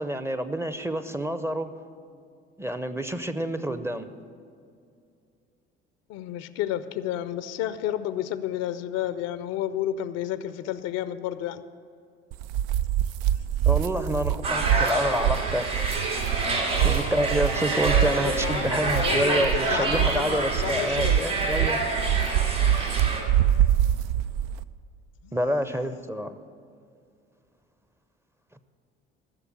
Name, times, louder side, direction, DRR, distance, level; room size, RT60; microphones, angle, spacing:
voice 1, 0.0-1.7 2.6-4.1 13.7-15.7 16.8-21.8 25.3-26.4, equal, 10° right, 11 dB, 0.7 m, -28 dB
voice 2, 6.1-11.6 13.3-14.4 15.6-16.3 17.6-17.8 18.2-21.4 23.2-24.2 25.2-25.4, left 11 dB, 55° left, 14 dB, 0.6 m, -32 dB
sound 1, 12.3-24.6, right 11 dB, 55° right, 0.4 m, -25 dB
sound 2, 14.4-23.2, right 2 dB, 80° right, 2.7 m, -28 dB
14.5 x 6.9 x 8.5 m, 2.4 s
figure-of-eight pair, 60°, 31 cm